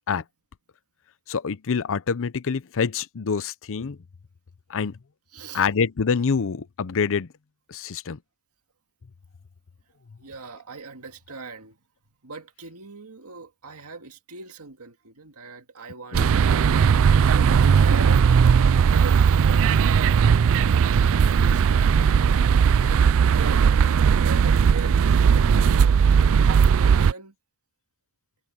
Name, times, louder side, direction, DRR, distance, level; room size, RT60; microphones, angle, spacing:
voice 1, 1.3-4.0 4.7-5.0 5.5-7.3 7.7-8.2 16.1-16.3, left 5 dB, 65° left, 0.6 m, -26 dB
voice 2, 5.3-5.7 10.2-11.8 12.2-20.3 21.0-22.3 23.3-23.8 24.1-26.2 26.7-27.3, right 4 dB, 80° right, 2.1 m, -41 dB
sound 1, 16.1-27.1, right 6 dB, 65° right, 0.4 m, -18 dB
head